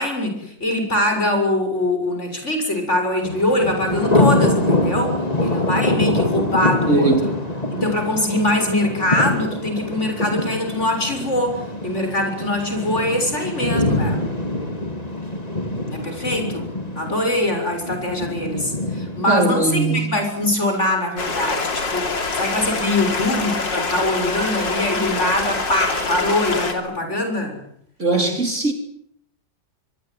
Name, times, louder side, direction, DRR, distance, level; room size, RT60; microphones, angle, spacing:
voice 1, 0.0-7.1 7.7-11.6 11.8-14.2 15.9-16.7 17.0-27.6, left 1 dB, 40° left, 5 dB, 7.1 m, -23 dB
Thunder, 3.2-20.2, left 1 dB, 20° left, 3.6 m, -24 dB
voice 2, 6.9-7.3 19.3-20.1 28.0-28.7, right 3 dB, 40° right, 5 dB, 4.1 m, -19 dB
Stream, 21.2-26.7, left 3 dB, 85° left, 3.9 m, -25 dB
25.5 x 21.0 x 9.6 m, 0.69 s
omnidirectional pair, 1.9 m